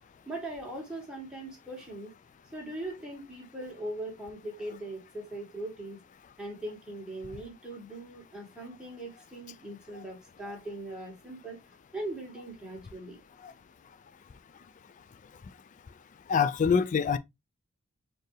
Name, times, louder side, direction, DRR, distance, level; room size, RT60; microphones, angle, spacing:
voice 1, 0.3-2.1 2.5-6.0 6.4-11.6 11.9-13.2, right 1 dB, 5° right, 1.9 m, -40 dB
voice 2, 16.3-17.2, left 6 dB, 35° left, 0.3 m, -25 dB
4.5 x 3.8 x 3.1 m
head